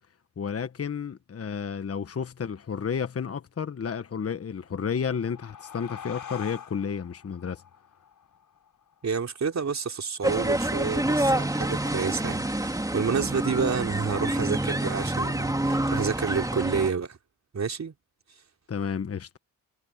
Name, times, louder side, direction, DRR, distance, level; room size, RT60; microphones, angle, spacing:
voice 1, 0.4-7.6 18.7-19.4, left 6 dB, 40° left, 1.4 m, -31 dB
sound 1, 4.7-9.9, left 8 dB, 65° left, 7.1 m, -45 dB
voice 2, 9.0-17.2 17.5-17.9, right 6 dB, 50° right, 4.0 m, -29 dB
sound 2, 10.2-16.9, right 1 dB, 10° right, 3.0 m, -27 dB
cardioid pair, 70°, 36 cm